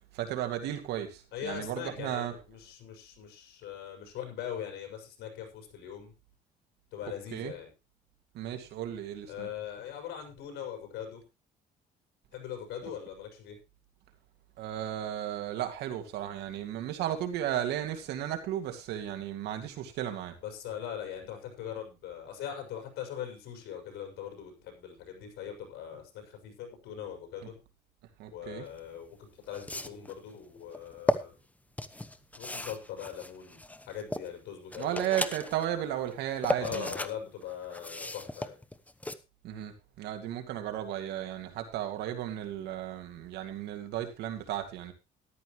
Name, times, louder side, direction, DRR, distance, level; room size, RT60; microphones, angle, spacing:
voice 1, 0.1-2.3 7.3-7.5 8.3-9.5 14.6-20.4 28.2-28.6 34.8-36.9 39.4-44.9, right 11 dB, 80° right, 7 dB, 2.2 m, -34 dB
voice 2, 1.3-6.1 6.9-7.7 9.3-11.2 12.3-13.6 20.4-27.6 28.3-31.3 32.4-33.6 33.9-35.1 36.6-38.6, left 9 dB, 80° left, 4 dB, 6.0 m, -41 dB
sound 1, 28.8-28.9 29.5-30.1 30.7-31.2 31.8-34.3 34.7-35.7 36.1-37.1 37.4-39.1, left 1 dB, 10° left, 1.0 m, -34 dB
14.0 x 12.0 x 3.1 m, 0.27 s
cardioid pair, 110°, 17 cm